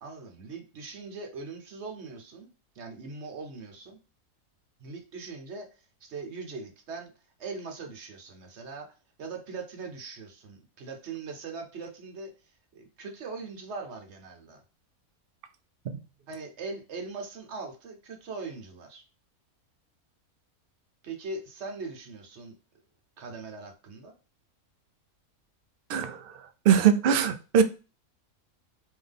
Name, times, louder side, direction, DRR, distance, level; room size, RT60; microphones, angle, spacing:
voice 1, 0.0-4.0 4.8-5.7 6.0-7.1 7.4-8.9 9.2-12.3 12.7-14.6 16.3-19.0 21.0-22.5 23.2-24.1, right 4 dB, 50° right, 4 dB, 1.1 m, -40 dB
voice 2, 25.9-27.6, right 8 dB, 90° right, 9 dB, 0.5 m, -23 dB
3.8 x 3.1 x 3.5 m, 0.33 s
omnidirectional pair, 1.6 m